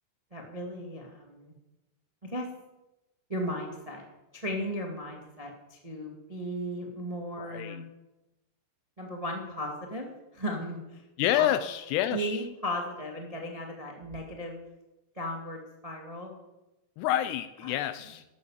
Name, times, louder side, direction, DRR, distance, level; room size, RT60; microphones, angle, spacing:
voice 1, 0.3-1.5 2.3-2.5 3.3-4.0 4.3-7.8 9.0-10.1 10.3-11.0 11.4-11.5 12.1-14.6 15.1-16.3 17.6-17.8, equal, 30° right, 1 dB, 0.6 m, -36 dB
voice 2, 7.4-7.8 11.2-12.4 17.0-18.2, left 12 dB, 80° left, 12 dB, 2.5 m, -28 dB
12.5 x 12.0 x 7.4 m, 1.0 s
omnidirectional pair, 5.2 m